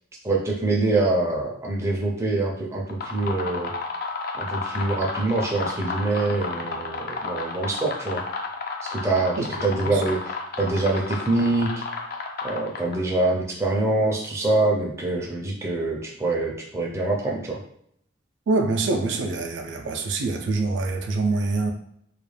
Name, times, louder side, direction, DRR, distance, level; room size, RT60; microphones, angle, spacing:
voice 1, 0.2-3.7 4.3-8.2 8.9-9.4 9.6-11.7 12.4-17.6, right 2 dB, 15° right, -3 dB, 0.4 m, -25 dB
sound 1, 2.8-13.1, left 4 dB, 55° left, 0.3 m, -32 dB
voice 2, 18.5-21.7, right 3 dB, 80° right, 3 dB, 0.4 m, -25 dB
2.4 x 2.2 x 3.1 m, 0.69 s
head